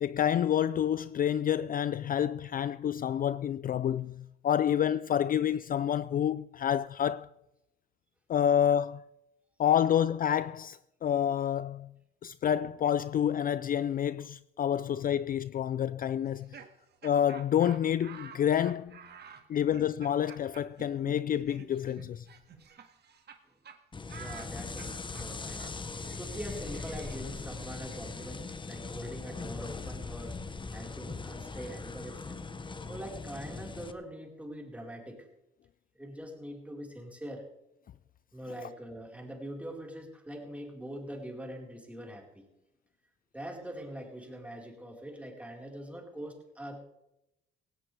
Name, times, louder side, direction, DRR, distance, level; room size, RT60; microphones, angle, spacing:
voice 1, 0.0-7.3 8.3-9.0 9.6-11.9 12.2-16.6 17.0-19.0 19.5-22.3 38.6-38.7, left 9 dB, 45° left, 0.4 m, -28 dB
Laughter, 16.2-23.4 23.6-23.8 24.1-29.8, right 7 dB, 55° right, 1.9 m, -52 dB
sound 1, 23.9-33.9, left 4 dB, 25° left, 1.0 m, -40 dB
voice 2, 24.2-30.4 30.7-32.4 32.9-35.3 35.9-37.4 38.3-42.4 43.3-46.8, equal, 5° right, 4.4 m, -43 dB
17.5 x 17.0 x 3.4 m
cardioid pair, 90°, 20 cm